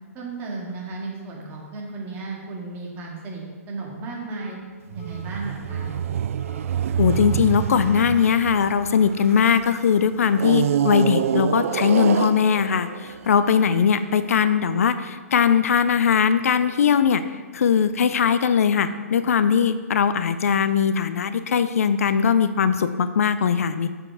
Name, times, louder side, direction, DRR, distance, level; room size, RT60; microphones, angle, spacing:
voice 1, 0.1-4.6 4.9-5.9, right 3 dB, 25° right, -2 dB, 2.1 m, -34 dB
sound 1, 4.3-4.5 5.0-5.2 5.7-5.9 6.3-6.6 7.1-7.3 7.7-8.0 8.4-8.7 9.1-9.3 9.8-10.0 10.5-10.7 11.2-11.4 11.9-12.1 12.6-12.8 13.3-13.5 14.0-14.2 14.7-14.9, left 5 dB, 35° left, 2.0 m, -45 dB
sound 2, 4.9-9.6 10.3-13.8, right 9 dB, 65° right, 0.3 m, -26 dB
voice 2, 7.0-23.9, left 7 dB, 70° left, 12 dB, 0.5 m, -20 dB
7.4 x 6.7 x 4.8 m, 1.5 s
hypercardioid pair, 135°, 8 cm